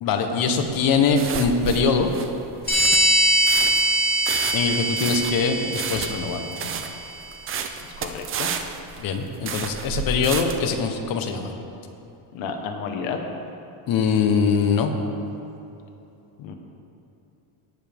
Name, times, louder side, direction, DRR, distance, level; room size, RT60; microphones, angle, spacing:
voice 1, 0.0-2.1 4.5-6.6 9.0-11.5 13.9-14.9, left 5 dB, 45° left, 5 dB, 1.0 m, -22 dB
sound 1, 0.6-10.7, right 6 dB, 30° right, 0.4 m, -31 dB
sound 2, 2.7-7.0, right 1 dB, 20° left, 2.1 m, -22 dB
voice 2, 8.0-8.5 12.3-13.2 16.4-16.5, left 6 dB, 70° left, 4 dB, 1.3 m, -31 dB
17.0 x 7.2 x 3.5 m, 2.9 s
cardioid pair, 155°, 48 cm